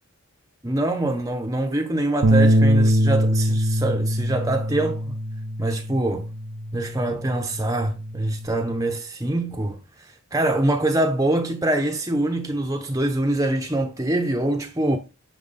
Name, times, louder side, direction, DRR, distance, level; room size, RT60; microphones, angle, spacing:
voice 1, 0.6-5.2 5.6-6.3 6.7-15.0, right 1 dB, 15° right, 0.8 m, -24 dB
sound 1, 2.2-8.5, equal, 70° right, 0.8 m, -22 dB
10.0 x 6.1 x 4.1 m
head